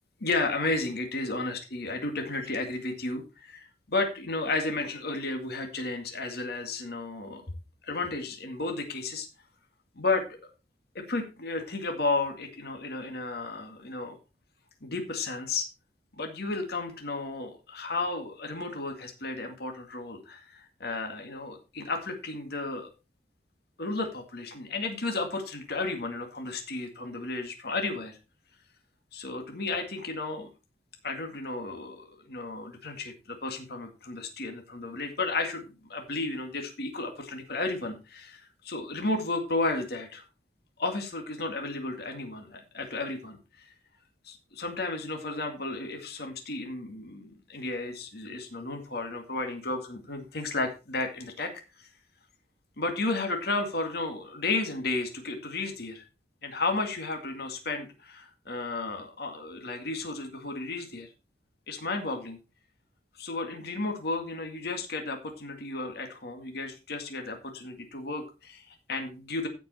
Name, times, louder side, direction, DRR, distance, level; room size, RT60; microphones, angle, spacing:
voice 1, 0.2-7.4 7.8-9.3 10.0-10.2 10.9-14.2 14.8-15.7 16.1-22.9 23.8-28.2 29.1-30.5 31.0-35.6 35.9-40.2 40.8-43.7 44.2-51.5 51.8-51.9 52.8-56.0 56.4-61.1 61.7-62.4 63.2-69.5, left 3 dB, 60° left, 4 dB, 2.1 m, -33 dB
15.5 x 5.3 x 4.2 m, 0.30 s
head